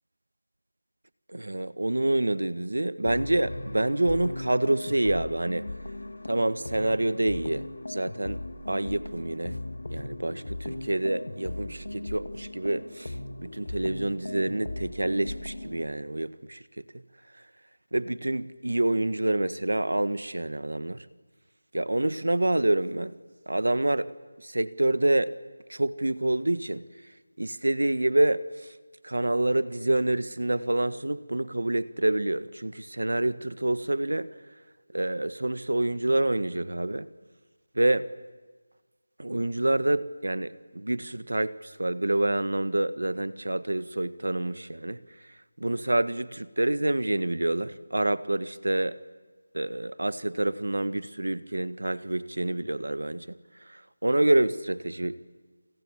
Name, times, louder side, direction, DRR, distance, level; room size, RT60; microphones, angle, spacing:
voice 1, 1.3-5.7 6.3-8.4 8.7-9.6 9.9-13.1 13.4-16.8 17.9-21.0 21.7-23.1 23.5-24.1 24.4-25.3 25.7-26.8 27.4-28.7 29.0-34.3 34.9-37.1 37.7-38.1 39.2-45.0 45.6-49.0 49.5-53.4 53.7-55.2, right 1 dB, 90° right, 15 dB, 1.5 m, -27 dB
sound 1, 3.1-15.9, left 2 dB, 70° left, 3.0 m, -38 dB
28.5 x 28.0 x 7.4 m, 1.4 s
figure-of-eight pair, 175°, 0 cm